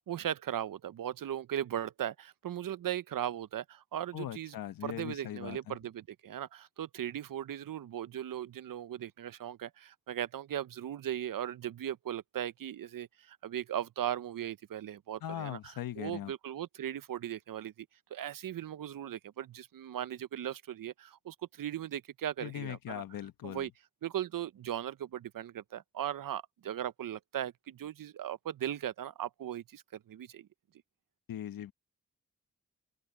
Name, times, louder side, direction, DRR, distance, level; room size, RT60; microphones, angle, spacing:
voice 1, 0.0-4.5 4.8-23.0 23.4-23.7 24.0-30.5, right 11 dB, 75° right, 0.8 m, -38 dB
voice 2, 4.1-5.8 15.2-16.3 22.4-23.7 31.3-31.7, left 12 dB, 90° left, 1.2 m, -40 dB
open air
supercardioid pair, 45°, 34 cm